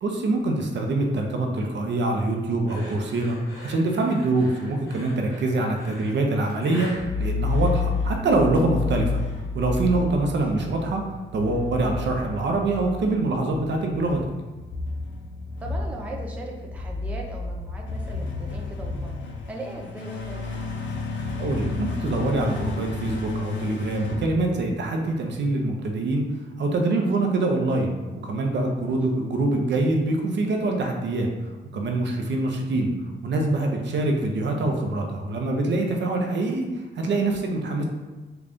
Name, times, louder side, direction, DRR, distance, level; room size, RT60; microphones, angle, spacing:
voice 1, 0.0-9.2 9.5-14.2 21.4-26.2 26.6-27.9 28.2-31.3 31.7-32.9 33.2-36.6 37.0-37.8, right 2 dB, 60° right, 2 dB, 0.6 m, -24 dB
sound 1, 2.7-8.2, left 1 dB, 80° left, 1.0 m, -41 dB
sound 2, 6.9-25.1, left 3 dB, 65° left, 0.5 m, -31 dB
voice 2, 15.6-19.2 19.5-20.6 28.8-29.0, right 1 dB, 5° right, -1 dB, 0.4 m, -38 dB
3.8 x 2.3 x 3.5 m, 1.2 s
wide cardioid pair, 140°, 21 cm